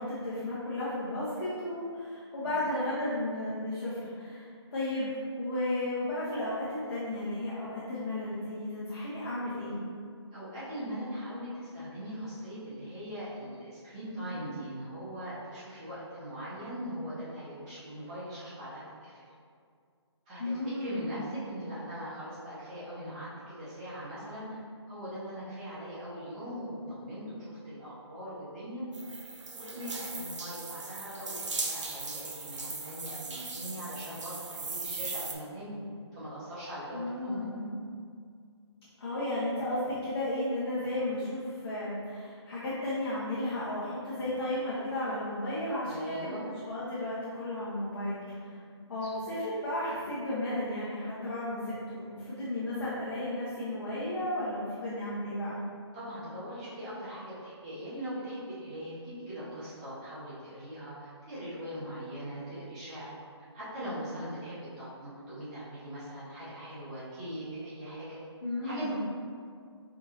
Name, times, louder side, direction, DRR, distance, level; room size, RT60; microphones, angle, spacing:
voice 1, 0.0-9.8 20.4-21.2 36.9-37.7 39.0-48.6 48.9-55.6 68.4-69.0, left 1 dB, 55° left, -11 dB, 1.3 m, -34 dB
voice 2, 10.3-19.2 20.3-24.6 24.9-28.8 29.5-35.8 36.1-37.5 45.8-46.4 49.0-49.1 55.9-63.1 63.5-68.2 68.6-68.9, equal, 15° right, -12 dB, 1.0 m, -41 dB
sound 1, 28.9-35.3, right 3 dB, 85° right, 0.7 m, -38 dB
4.8 x 3.5 x 2.9 m, 2.2 s
hypercardioid pair, 170°, 15 cm